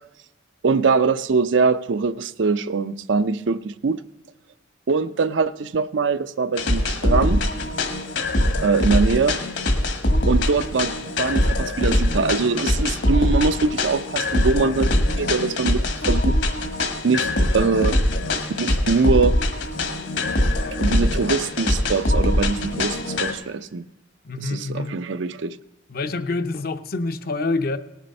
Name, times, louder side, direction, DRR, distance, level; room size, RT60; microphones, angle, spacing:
voice 1, 0.6-4.0 4.9-7.5 8.6-9.4 10.3-15.8 16.1-16.4 17.0-18.0 18.6-19.4 20.8-23.8 24.3-25.6, right 4 dB, 75° right, 0.5 m, -22 dB
sound 1, 6.6-23.3, left 1 dB, 65° left, 1.6 m, -22 dB
voice 2, 24.2-25.0 25.9-27.8, left 3 dB, 50° left, 0.6 m, -26 dB
18.5 x 7.3 x 5.3 m
head